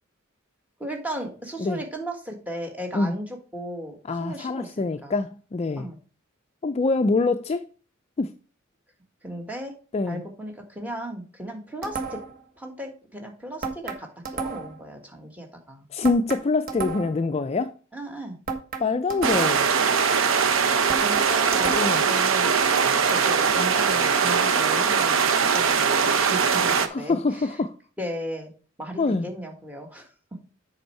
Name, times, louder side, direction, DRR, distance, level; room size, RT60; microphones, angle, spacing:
voice 1, 0.8-5.2 5.8-6.0 9.2-9.7 10.0-12.2 12.6-15.9 17.9-18.4 20.9-22.6 23.1-27.6 28.0-28.5 28.8-30.1, right 1 dB, 5° right, 1.6 m, -36 dB
voice 2, 4.1-5.9 6.6-7.6 8.2-8.3 9.9-10.2 15.9-17.7 18.8-19.7 21.7-22.0 26.7-27.7 29.0-29.3, left 3 dB, 30° left, 0.3 m, -25 dB
sound 1, 11.8-12.4 13.6-14.8 16.0-17.3 18.5-19.7 20.9-22.1, right 5 dB, 40° right, 1.3 m, -33 dB
sound 2, 19.2-26.9, right 6 dB, 70° right, 0.9 m, -21 dB
8.0 x 5.4 x 4.4 m
head